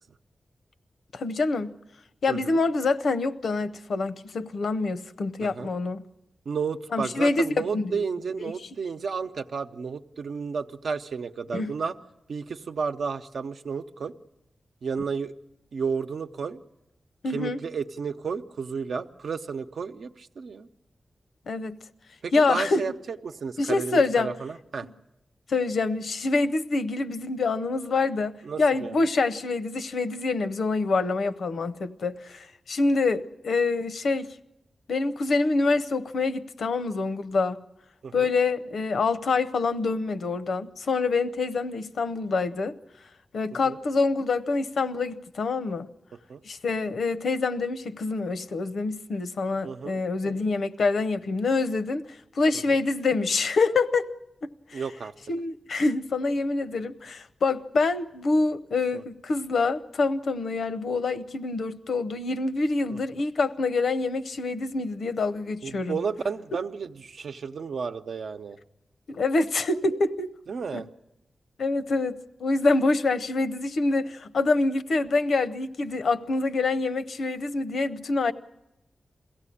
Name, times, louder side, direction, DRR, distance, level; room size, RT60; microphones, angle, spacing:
voice 1, 1.1-1.8 2.2-6.0 6.9-8.0 11.5-11.7 17.2-17.6 21.5-21.8 22.3-22.8 23.6-24.3 24.8-24.9 25.5-34.3 34.9-37.6 38.1-42.7 43.3-45.9 46.4-52.0 52.3-54.1 54.4-54.8 55.3-66.0 69.1-70.3 70.7-70.8 71.6-78.3, left 3 dB, 75° left, 11 dB, 0.8 m, -26 dB
voice 2, 2.3-2.6 5.4-5.7 6.4-11.9 12.3-14.1 14.8-15.3 15.7-16.6 17.3-20.7 22.2-24.9 28.4-29.0 38.0-38.3 43.5-43.8 46.3-46.4 49.6-50.0 52.7-52.8 54.7-55.1 58.9-59.0 62.9-63.0 65.6-68.6 70.5-70.9, right 5 dB, 75° right, 8 dB, 0.8 m, -32 dB
22.5 x 16.5 x 9.9 m, 0.88 s
wide cardioid pair, 155°, 0 cm